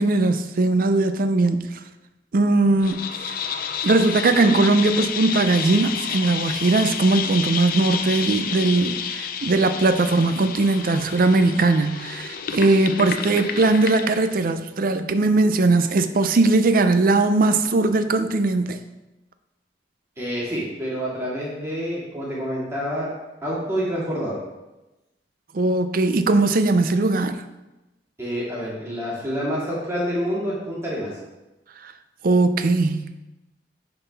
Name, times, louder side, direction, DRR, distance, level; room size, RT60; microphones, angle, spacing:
voice 1, 0.0-1.7 2.3-3.1 3.8-18.8 25.5-27.4 32.2-33.0, right 2 dB, 55° right, 9 dB, 0.5 m, -19 dB
sound 1, 2.8-14.3, left 7 dB, 55° left, 0.5 m, -30 dB
voice 2, 20.2-23.1 23.4-24.4 28.2-31.2, equal, 15° right, -8 dB, 2.3 m, -27 dB
10.5 x 4.1 x 3.4 m, 1.0 s
head